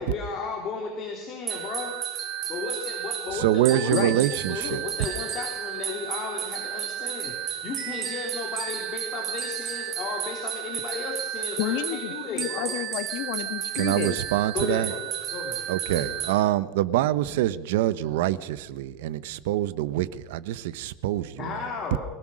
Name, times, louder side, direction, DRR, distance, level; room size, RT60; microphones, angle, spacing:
voice 1, 0.0-1.9 2.5-12.7 14.5-16.2 21.4-22.0, left 5 dB, 30° left, 3.1 m, -34 dB
sound 1, 1.5-16.4, right 10 dB, 30° right, 2.2 m, -33 dB
voice 2, 3.3-4.8 13.7-14.9 15.7-21.5, right 13 dB, 85° right, 1.0 m, -25 dB
voice 3, 11.6-14.2, left 13 dB, 60° left, 1.5 m, -30 dB
24.5 x 17.0 x 6.4 m
cardioid pair, 170°, 0 cm